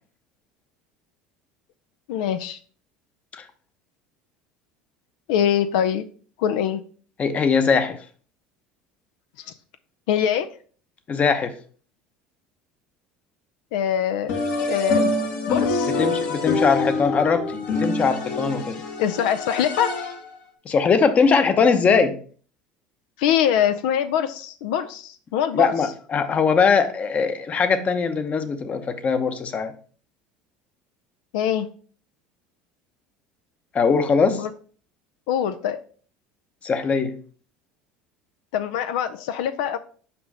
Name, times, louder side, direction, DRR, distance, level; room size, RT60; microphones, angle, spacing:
voice 1, 2.1-2.6 5.3-6.0 6.4-6.8 10.1-10.5 13.7-14.4 14.7-15.1 15.5-15.9 19.0-20.0 23.2-25.7 31.3-31.7 34.3-34.5 35.3-35.8 38.5-39.8, left 9 dB, 80° left, 0.5 m, -23 dB
voice 2, 7.2-8.0 11.1-11.6 15.9-18.8 20.6-22.2 25.5-29.7 33.7-34.5 36.6-37.2, left 5 dB, 35° left, 0.9 m, -21 dB
sound 1, 14.3-20.4, left 3 dB, 60° left, 1.4 m, -25 dB
5.9 x 5.2 x 3.3 m
supercardioid pair, 95°, 4 cm